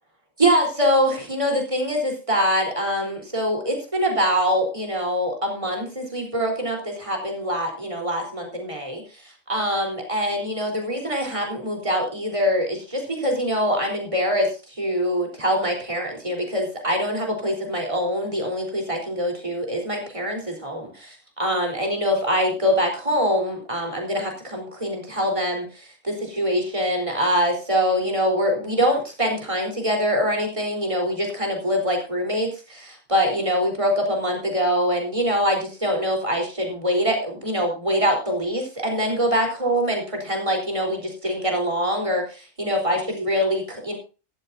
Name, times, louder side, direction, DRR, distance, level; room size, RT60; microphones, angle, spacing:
voice 1, 0.4-9.0 9.5-14.5 14.8-44.0, equal, 25° right, 2 dB, 4.0 m, -24 dB
15.0 x 13.0 x 2.7 m, 0.33 s
omnidirectional pair, 1.3 m